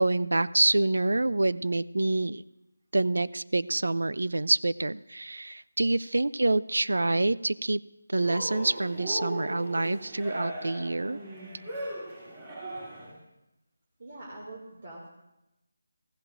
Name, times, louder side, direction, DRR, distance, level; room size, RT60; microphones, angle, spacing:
voice 1, 0.0-2.4 2.9-7.8 8.1-11.2, right 2 dB, 85° right, 18 dB, 0.3 m, -26 dB
Cheering, 8.2-13.2, right 1 dB, 25° right, 3.2 m, -38 dB
voice 2, 14.0-15.1, right 2 dB, 40° right, -3 dB, 2.2 m, -44 dB
15.5 x 15.0 x 2.5 m, 0.90 s
figure-of-eight pair, 175°, 0 cm